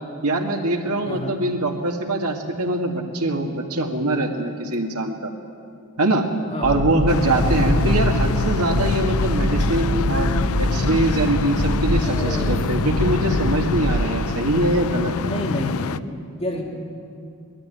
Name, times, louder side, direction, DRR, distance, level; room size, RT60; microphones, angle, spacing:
voice 1, 0.2-5.3 6.0-6.3 6.6-15.1, right 1 dB, 90° right, 3 dB, 1.9 m, -23 dB
voice 2, 1.0-1.4 6.5-6.8 7.3-7.6 12.0-12.9 15.2-16.6, left 1 dB, 30° left, -2 dB, 2.9 m, -30 dB
sound 1, 6.6-14.1, equal, 55° right, 1.8 m, -24 dB
sound 2, 7.1-16.0, left 5 dB, 70° left, 0.5 m, -26 dB
20.5 x 13.5 x 9.3 m, 2.4 s
head